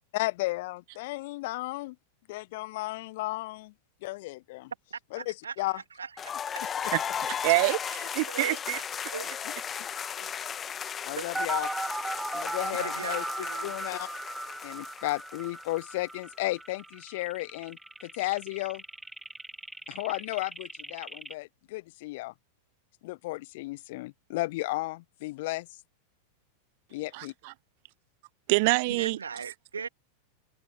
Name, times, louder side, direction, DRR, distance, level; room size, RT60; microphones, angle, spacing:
voice 1, 0.1-2.0 2.3-3.7 4.0-4.7 5.1-5.8 10.2-10.3 11.1-11.7 12.3-13.2 13.6-14.1 14.6-18.8 19.9-22.3 23.0-25.7 26.9-27.3, left 20 dB, 50° left, 1.0 m, -34 dB
voice 2, 4.9-6.3 6.6-6.7 8.3-8.6 9.1-9.3 11.2-11.5 12.8-13.7 28.9-29.9, right 6 dB, 75° right, 2.3 m, -39 dB
sound 1, 6.2-15.9, left 8 dB, 25° left, 1.4 m, -36 dB
voice 3, 7.4-8.8 27.1-27.5 28.5-29.2, right 27 dB, 45° right, 0.4 m, -26 dB
sound 2, 11.3-21.3, right 2 dB, 5° right, 1.7 m, -37 dB
figure-of-eight pair, 90°, 0 cm